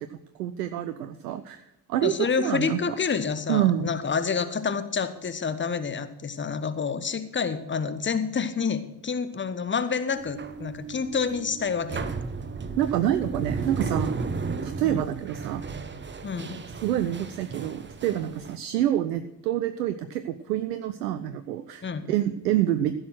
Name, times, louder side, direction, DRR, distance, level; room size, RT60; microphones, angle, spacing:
voice 1, 0.4-1.6 1.9-3.0 3.5-3.9 12.8-14.1 14.6-15.6 16.8-23.0, right 12 dB, 75° right, 11 dB, 0.6 m, -27 dB
voice 2, 2.0-12.1 14.8-15.0 16.2-16.6 21.8-22.1, left 5 dB, 25° left, 12 dB, 1.1 m, -28 dB
sound 1, 10.1-18.6, right 4 dB, 20° right, 1.0 m, -34 dB
15.5 x 6.5 x 6.2 m, 0.88 s
figure-of-eight pair, 45°, 49 cm